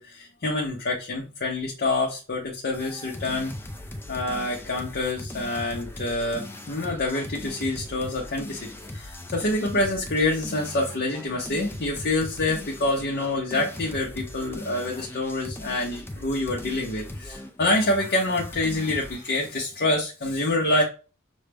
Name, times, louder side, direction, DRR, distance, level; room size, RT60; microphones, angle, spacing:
voice 1, 0.0-3.5 4.1-20.8, left 2 dB, 50° left, -1 dB, 0.8 m, -27 dB
sound 1, 2.7-19.3, left 1 dB, 10° left, 0.5 m, -39 dB
6.2 x 2.2 x 3.4 m, 0.33 s
head